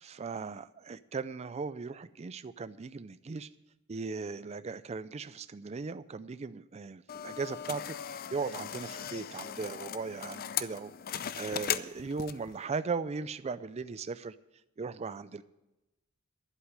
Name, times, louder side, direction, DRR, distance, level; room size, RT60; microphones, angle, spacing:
voice 1, 0.0-3.5 3.9-8.0 8.3-10.9 11.3-14.3 14.8-15.4, right 4 dB, 30° right, 14 dB, 0.4 m, -38 dB
sound 1, 7.1-12.5, left 9 dB, 45° left, 0.5 m, -38 dB
11.5 x 8.0 x 9.9 m, 0.98 s
head